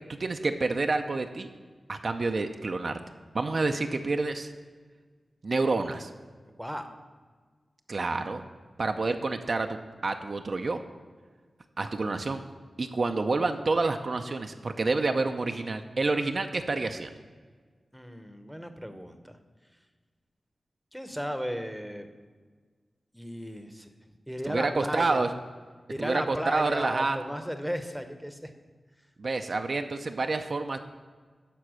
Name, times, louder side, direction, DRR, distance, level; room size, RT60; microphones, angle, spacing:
voice 1, 0.1-1.5 1.9-3.0 3.3-4.5 5.4-6.1 7.9-8.4 8.8-10.8 11.8-12.4 12.8-17.1 24.5-25.3 26.0-27.2 29.2-30.8, right 3 dB, 60° right, 6 dB, 0.5 m, -28 dB
voice 2, 17.9-19.3 20.9-22.1 23.1-23.9 24.3-25.2 25.9-28.5, equal, ahead, 7 dB, 0.8 m, -35 dB
11.5 x 4.2 x 6.2 m, 1.5 s
cardioid pair, 65°, 0 cm